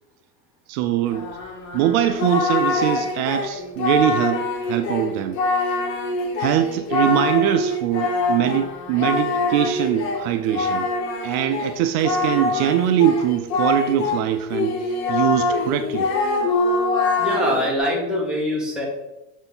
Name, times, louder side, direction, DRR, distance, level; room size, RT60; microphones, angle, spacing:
voice 1, 0.7-1.3 1.7-5.4 6.4-10.9 11.2-14.8 15.1-16.1, right 11 dB, 65° right, 8 dB, 0.5 m, -22 dB
Singing, 1.1-14.2 14.5-17.7, left 3 dB, 85° left, 1.6 m, -24 dB
voice 2, 17.2-18.9, equal, ahead, -4 dB, 1.5 m, -23 dB
6.9 x 4.1 x 3.9 m, 0.99 s
supercardioid pair, 145°, 48 cm